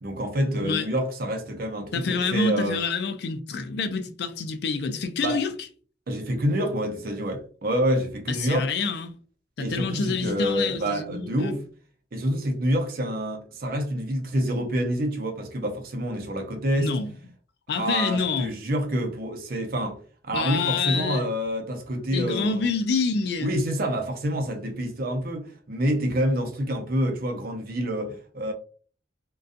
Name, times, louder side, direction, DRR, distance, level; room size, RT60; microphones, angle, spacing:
voice 1, 0.0-2.8 5.2-5.4 6.1-8.7 9.6-11.6 12.1-17.0 17.7-20.0 20.2-22.7 23.4-28.5, equal, 50° right, 0.6 m, -27 dB
voice 2, 1.9-5.5 8.3-9.1 9.6-11.6 16.8-17.2 17.7-18.5 20.3-21.2 22.1-23.5, left 4 dB, 60° left, 0.3 m, -27 dB
2.5 x 2.3 x 2.4 m
head